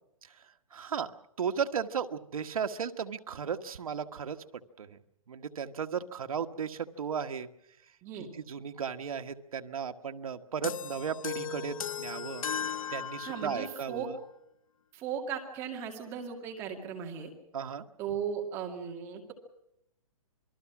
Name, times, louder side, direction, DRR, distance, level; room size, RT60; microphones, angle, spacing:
voice 1, 0.7-1.1 1.4-4.4 4.8-5.0 5.3-7.5 8.1-12.5 12.9-14.2 17.5-17.8, right 7 dB, 80° right, 7 dB, 1.5 m, -35 dB
sound 1, 10.6-13.8, left 7 dB, 75° left, 0.9 m, -37 dB
voice 2, 13.2-14.1 14.9-17.3 18.0-19.3, right 7 dB, 15° right, 2 dB, 2.1 m, -37 dB
27.5 x 20.0 x 6.1 m, 0.79 s
hypercardioid pair, 180°, 18 cm